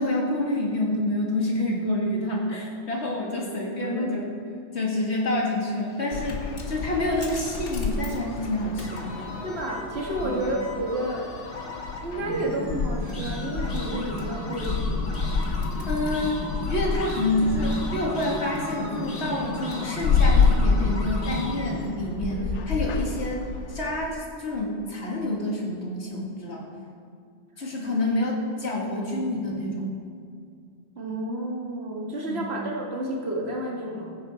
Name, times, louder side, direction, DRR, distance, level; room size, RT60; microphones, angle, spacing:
voice 1, 0.0-4.3 4.7-6.4 6.7-9.1 10.2-10.4 15.9-26.7 27.6-29.9 32.3-32.5, left 1 dB, 70° left, -3 dB, 2.6 m, -28 dB
voice 2, 3.8-4.2 9.4-11.3 12.0-15.1 22.3-22.5 27.8-27.9 28.8-28.9 31.0-34.2, right 1 dB, 65° right, -2 dB, 2.1 m, -31 dB
sound 1, 5.7-21.9, left 1 dB, 55° left, 2.0 m, -35 dB
sound 2, 6.1-24.1, left 4 dB, 90° left, 1.1 m, -29 dB
21.0 x 9.9 x 4.5 m, 2.3 s
omnidirectional pair, 1.2 m